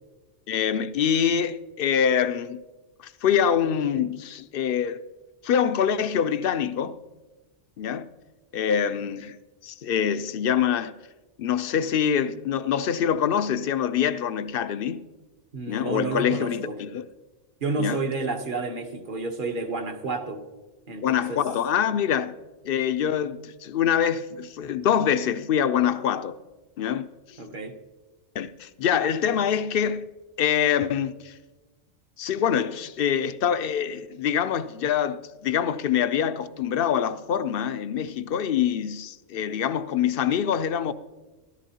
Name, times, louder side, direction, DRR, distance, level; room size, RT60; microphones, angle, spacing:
voice 1, 0.5-2.6 3.0-5.0 5.4-7.0 7.8-8.1 8.5-9.4 9.6-10.9 11.4-15.0 15.7-17.1 17.8-18.0 21.0-22.3 22.6-26.3 26.8-27.1 28.3-30.0 30.4-31.3 32.2-40.9, left 8 dB, 60° left, 0.6 m, -25 dB
voice 2, 15.5-16.8 17.6-20.5 20.9-21.5 27.4-27.8, right 3 dB, 50° right, 1.1 m, -30 dB
14.0 x 13.5 x 2.8 m
omnidirectional pair, 1.2 m